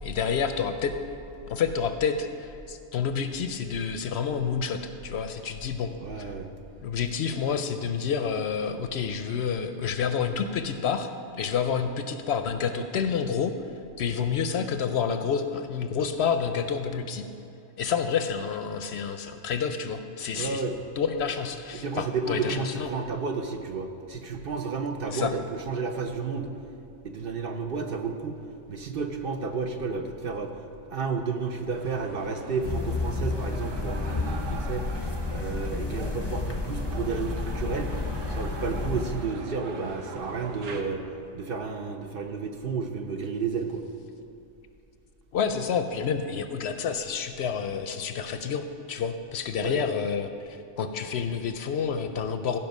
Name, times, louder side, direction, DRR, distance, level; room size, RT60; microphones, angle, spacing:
voice 1, 0.0-0.9 1.5-6.3 6.8-13.5 14.0-17.2 17.8-20.6 21.0-22.9 25.1-25.3 45.3-52.6, left 6 dB, 65° left, 8 dB, 0.8 m, -29 dB
voice 2, 6.0-6.5 20.3-20.8 21.7-26.5 27.0-28.4 28.7-30.6 30.9-37.9 38.3-41.0 41.3-43.8 49.6-49.8, right 4 dB, 55° right, 4 dB, 0.8 m, -32 dB
sound 1, 31.7-40.8, right 4 dB, 85° right, 1.2 m, -41 dB
sound 2, 32.6-39.3, left 3 dB, 30° left, 0.5 m, -31 dB
15.5 x 5.5 x 5.4 m, 2.6 s
omnidirectional pair, 1.3 m